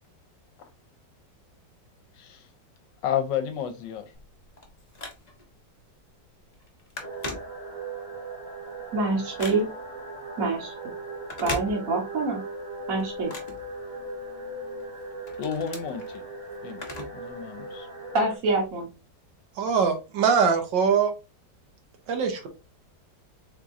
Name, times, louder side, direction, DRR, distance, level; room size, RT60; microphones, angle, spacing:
voice 1, 3.0-4.1 15.4-16.2 16.6-16.9 17.1-17.9, left 9 dB, 75° left, 1.3 m, -31 dB
Telephone, 4.1-5.6 6.1-6.3 6.5-8.0 8.5-10.0 11.2-12.3 12.6-14.3 14.8-17.3 17.6-17.7 18.6-18.7, left 2 dB, 30° left, 0.7 m, -39 dB
sound 1, 7.0-18.4, right 2 dB, 30° right, 1.1 m, -38 dB
voice 2, 8.9-9.7 10.4-10.9 11.4-12.4 12.9-13.3 18.1-18.9, right 3 dB, 50° right, 1.4 m, -26 dB
voice 3, 19.6-21.1 22.1-22.5, right 6 dB, 75° right, 1.6 m, -22 dB
4.6 x 3.6 x 2.6 m
omnidirectional pair, 2.0 m